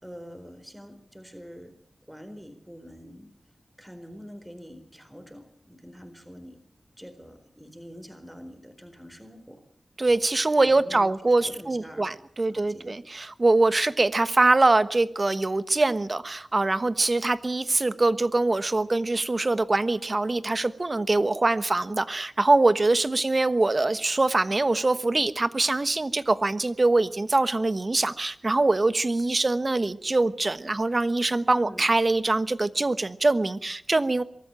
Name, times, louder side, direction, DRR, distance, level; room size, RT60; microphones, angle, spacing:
voice 1, 0.0-1.8 2.1-3.3 3.8-6.6 7.0-9.6 10.6-11.1 11.4-12.1 12.5-13.0 31.5-31.9, equal, 10° right, 7 dB, 4.2 m, -45 dB
voice 2, 10.0-34.2, right 2 dB, 45° right, 14 dB, 1.2 m, -23 dB
23.0 x 14.0 x 9.0 m, 0.65 s
cardioid pair, 40°, 0 cm